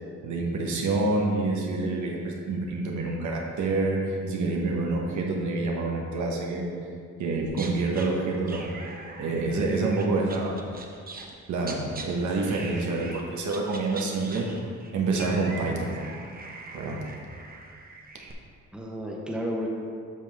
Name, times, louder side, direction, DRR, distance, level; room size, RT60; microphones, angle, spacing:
voice 1, 0.2-6.7 7.2-8.6 9.2-10.6 11.5-14.5 14.9-15.9 16.7-17.0, right 3 dB, 75° right, -1 dB, 1.3 m, -27 dB
sound 1, 7.5-8.1 8.5-11.3 11.6-12.1 12.5-13.2 13.5-18.3, right 3 dB, 30° right, 0.9 m, -42 dB
voice 2, 14.0-14.4 18.7-19.7, equal, 5° right, -2 dB, 1.2 m, -33 dB
8.1 x 5.6 x 3.5 m, 2.2 s
cardioid pair, 90°, 30 cm